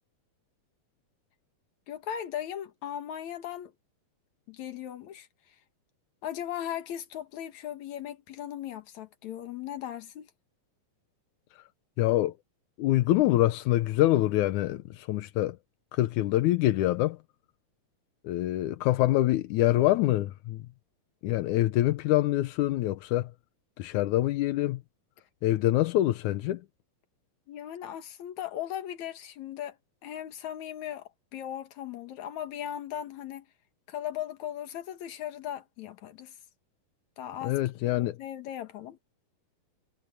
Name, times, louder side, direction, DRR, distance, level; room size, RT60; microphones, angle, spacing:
voice 1, 1.9-3.7 4.5-5.3 6.2-10.3 27.5-29.8 30.0-33.5 33.9-36.4 37.2-37.6 37.9-39.0, left 10 dB, 60° left, 2.6 m, -38 dB
voice 2, 12.0-12.3 12.8-15.6 15.9-17.2 18.2-20.6 21.2-23.3 23.8-24.8 25.4-26.6 37.4-38.2, left 15 dB, 75° left, 1.9 m, -25 dB
omnidirectional pair, 4.1 m